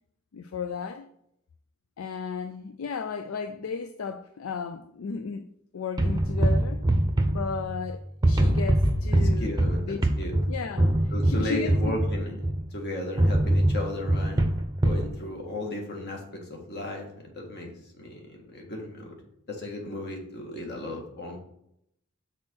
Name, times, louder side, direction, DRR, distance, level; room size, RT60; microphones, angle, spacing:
voice 1, 0.3-1.1 2.0-5.4 5.7-6.8 7.2-9.5 9.9-10.0 10.5-12.0, left 5 dB, 70° left, 0.4 m, -34 dB
sound 1, 6.0-7.9 8.2-12.7 13.2-15.1, right 1 dB, 20° right, 0.6 m, -23 dB
voice 2, 9.4-10.4 11.1-12.3 12.7-14.4 14.8-19.2 19.5-21.4, left 1 dB, 50° left, 1.7 m, -35 dB
6.1 x 4.3 x 6.2 m
head